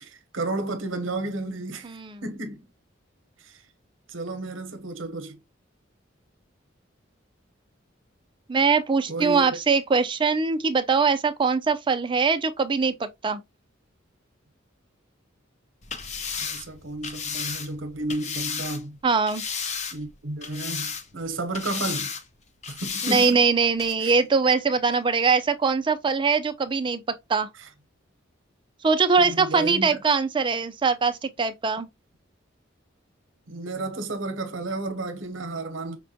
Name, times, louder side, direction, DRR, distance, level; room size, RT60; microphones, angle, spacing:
voice 1, 0.0-2.0 2.2-2.7 3.4-3.6 4.1-5.4 9.1-9.6 16.4-19.0 19.9-22.1 22.7-23.4 24.0-24.1 29.2-30.0 33.5-36.0, right 2 dB, 80° right, 0.7 m, -32 dB
voice 2, 1.8-2.2 8.5-13.4 19.0-19.4 23.0-27.5 28.8-31.9, right 5 dB, 25° right, 0.4 m, -22 dB
sound 1, 15.8-18.8 19.3-20.1 20.4-21.2 21.5-22.2 22.6-23.3 23.8-23.9, left 6 dB, 35° left, 0.6 m, -33 dB
5.3 x 2.1 x 2.7 m
head